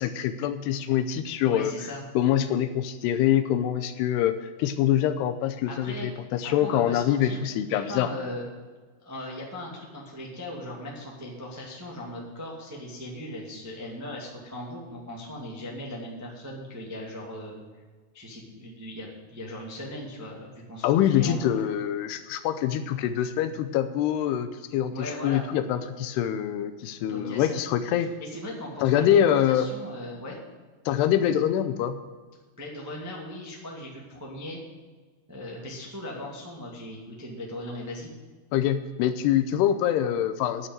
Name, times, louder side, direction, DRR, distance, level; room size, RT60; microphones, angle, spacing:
voice 1, 0.0-1.7 2.2-8.1 20.8-28.1 28.8-29.7 30.9-32.0 38.5-40.7, left 10 dB, 80° left, 9 dB, 2.6 m, -25 dB
voice 2, 1.5-2.0 5.7-6.1 6.6-7.4 7.7-8.4 9.0-17.6 18.1-21.5 24.9-25.4 27.1-27.6 28.0-30.4 32.6-34.6 35.3-38.1, left 1 dB, 10° right, -3 dB, 0.8 m, -38 dB
11.0 x 6.7 x 8.9 m, 1.4 s
omnidirectional pair, 4.9 m